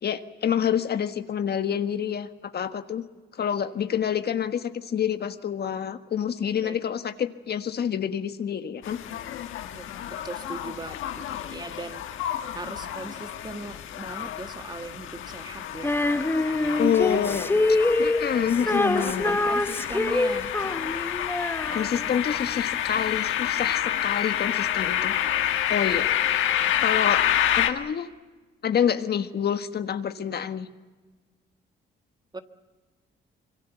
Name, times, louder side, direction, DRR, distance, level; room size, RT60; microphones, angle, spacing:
voice 1, 0.0-3.0 3.4-9.0 16.8-17.5 18.0-19.4 21.7-25.1 25.7-26.1 26.8-27.2 27.5-28.1 28.6-30.7, left 8 dB, 55° left, 9 dB, 1.5 m, -27 dB
sound 1, 8.8-27.7, left 11 dB, 80° left, 1.6 m, -29 dB
voice 2, 9.7-12.0 12.5-15.9 16.4-17.4 18.6-20.5 32.3-32.4, right 3 dB, 20° right, 8 dB, 1.6 m, -39 dB
Female singing, 15.8-22.3, left 2 dB, 10° left, 0.9 m, -25 dB
25.5 x 23.0 x 8.1 m, 1.3 s
cardioid pair, 90°, 20 cm